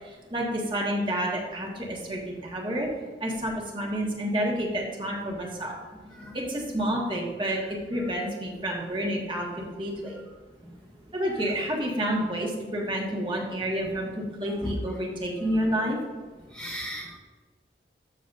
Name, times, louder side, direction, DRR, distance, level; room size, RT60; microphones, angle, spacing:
voice 1, 0.3-2.9 3.2-5.8 6.3-10.1 11.1-16.0, equal, 25° right, -1 dB, 1.5 m, -29 dB
voice 2, 16.5-17.2, equal, 5° left, -2 dB, 0.7 m, -36 dB
12.0 x 6.9 x 2.6 m, 1.3 s
head